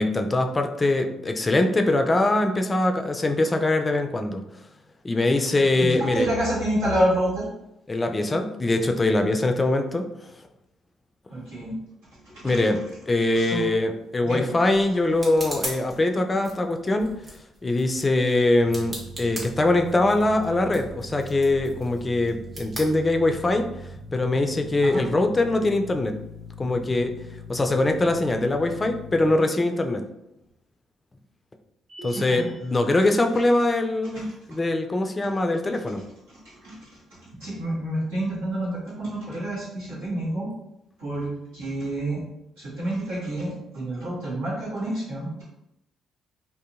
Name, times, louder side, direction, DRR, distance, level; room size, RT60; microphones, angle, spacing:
voice 1, 0.0-4.4 5.0-6.3 7.9-10.1 12.4-12.8 13.1-17.1 17.6-23.7 24.1-26.2 26.6-27.1 27.5-30.0 32.0-36.0, left 2 dB, 30° left, 5 dB, 0.3 m, -22 dB
voice 2, 5.8-7.4 11.3-11.7 12.2-12.6 13.3-13.6 14.2-14.5 24.8-25.0 32.1-32.5 34.1-34.3 36.3-37.0 37.4-40.5 41.0-42.2 42.6-45.4, right 1 dB, 85° right, -10 dB, 1.5 m, -28 dB
sound 1, 13.8-23.7, right 1 dB, 35° right, 1.1 m, -41 dB
sound 2, 18.6-29.3, left 1 dB, 15° right, 0.9 m, -41 dB
sound 3, 31.9-32.8, right 1 dB, 55° right, 0.8 m, -42 dB
2.6 x 2.6 x 2.4 m, 0.86 s
hypercardioid pair, 45°, 0 cm